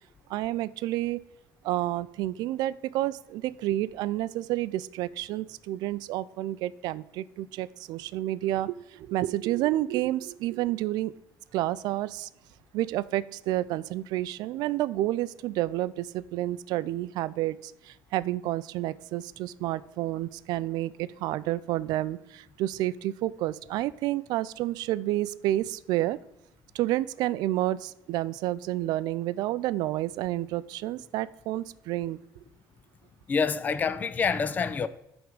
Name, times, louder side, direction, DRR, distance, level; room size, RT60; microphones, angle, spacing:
voice 1, 0.3-1.2 1.6-11.1 11.5-12.3 12.7-26.2 26.7-32.2, right 15 dB, 75° right, 0.3 m, -30 dB
voice 2, 33.3-34.9, left 5 dB, 25° left, 0.4 m, -27 dB
9.3 x 3.5 x 6.5 m
cardioid pair, 140°, 7 cm